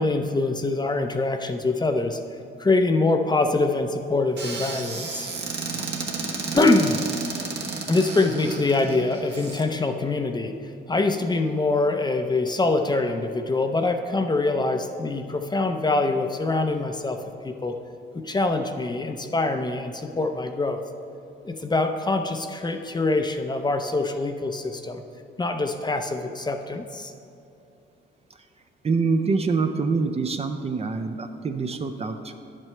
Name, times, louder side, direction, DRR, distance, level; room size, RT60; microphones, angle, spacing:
voice 1, 0.0-2.2 2.6-5.3 6.5-7.0 7.9-10.5 10.9-17.7 18.1-20.8 21.4-25.0 25.4-27.1, left 2 dB, 20° left, 6 dB, 0.6 m, -24 dB
Squeak / Cupboard open or close, 4.4-9.6, right 4 dB, 55° right, 1.2 m, -32 dB
voice 2, 28.8-32.3, right 4 dB, 30° right, 7 dB, 0.5 m, -25 dB
10.5 x 7.6 x 3.3 m, 2.8 s
cardioid pair, 90°, 20 cm